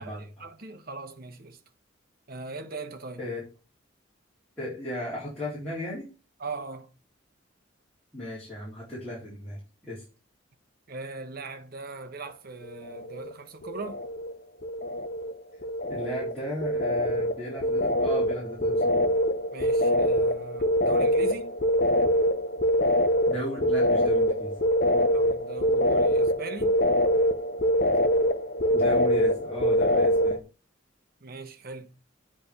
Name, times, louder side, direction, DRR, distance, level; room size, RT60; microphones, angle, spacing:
voice 1, 0.0-1.6 2.3-3.2 6.4-6.9 10.9-14.0 19.5-21.6 25.1-26.8 31.2-31.9, right 3 dB, 50° right, 1.1 m, -40 dB
voice 2, 4.6-6.1 8.1-9.6 9.9-10.0 15.9-19.1 23.3-24.5 28.7-30.4, left 1 dB, 5° left, 3.7 m, -35 dB
sound 1, 12.7-13.3 13.6-14.4 14.6-30.4, equal, 50° left, 0.8 m, -24 dB
8.6 x 4.3 x 6.8 m
head